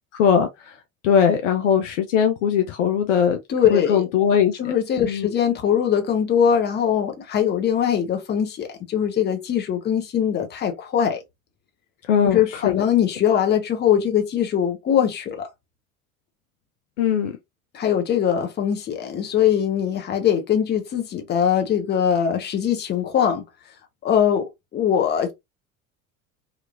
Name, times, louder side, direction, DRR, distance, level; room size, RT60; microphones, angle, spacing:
voice 1, 0.1-0.7 1.0-3.4 3.7-4.7 5.1-5.3 12.1-12.8 17.0-17.3, left 7 dB, 60° left, 0.6 m, -20 dB
voice 2, 3.5-4.0 4.6-11.2 12.2-15.5 17.7-23.4 24.0-25.3, left 9 dB, 25° left, 0.8 m, -21 dB
2.9 x 2.4 x 2.5 m
figure-of-eight pair, 70°, 42 cm